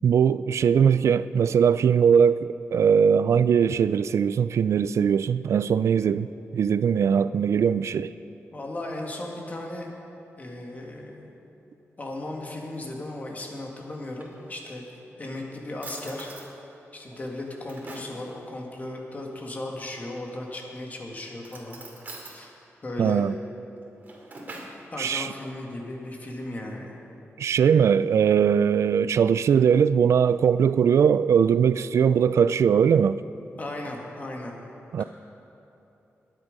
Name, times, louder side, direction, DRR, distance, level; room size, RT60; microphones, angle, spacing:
voice 1, 0.0-8.1 23.0-23.3 25.0-25.3 27.4-33.2 34.9-35.0, right 7 dB, 75° right, 0.3 m, -20 dB
voice 2, 8.5-9.9 10.4-11.3 12.0-14.8 15.2-16.3 16.9-21.8 22.2-22.5 22.8-23.2 24.9-27.0 33.6-34.6 35.0-35.1, left 1 dB, 35° left, 2.1 m, -36 dB
Drawer open or close, 13.9-14.9 15.4-15.5 15.8-16.5 17.1-18.2 20.1-20.6 21.4-22.4 23.8-24.8, right 2 dB, 40° right, 2.4 m, -44 dB
22.0 x 9.0 x 5.3 m
wide cardioid pair, 135°, 5 cm